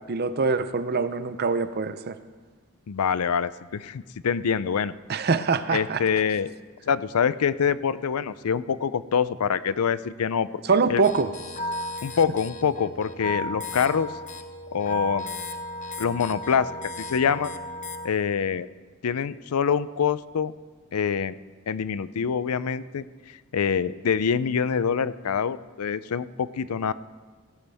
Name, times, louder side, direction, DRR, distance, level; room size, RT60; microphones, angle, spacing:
voice 1, 0.1-2.2 5.1-6.0 10.7-11.3, right 4 dB, 50° right, 12 dB, 0.7 m, -24 dB
voice 2, 2.9-4.9 5.7-6.5 6.9-10.5 10.9-11.0 12.0-14.1 14.7-15.3 16.0-17.5 18.0-18.7 19.0-20.5 20.9-21.4 21.7-23.0 23.5-26.9, left 7 dB, 90° left, 16 dB, 0.5 m, -25 dB
sound 1, 11.0-18.1, left 1 dB, 35° left, 0.8 m, -35 dB
17.0 x 16.0 x 3.5 m, 1.4 s
head